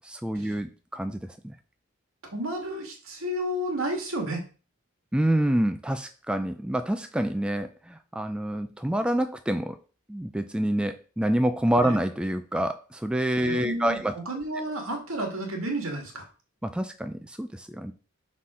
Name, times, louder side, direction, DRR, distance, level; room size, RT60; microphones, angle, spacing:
voice 1, 0.0-1.5 5.1-9.8 10.1-14.1 16.6-17.9, right 1 dB, 5° right, 8 dB, 0.3 m, -27 dB
voice 2, 2.3-4.4 11.8-12.0 13.4-16.3, right 1 dB, 75° right, 2 dB, 2.1 m, -31 dB
5.6 x 4.2 x 4.9 m, 0.35 s
head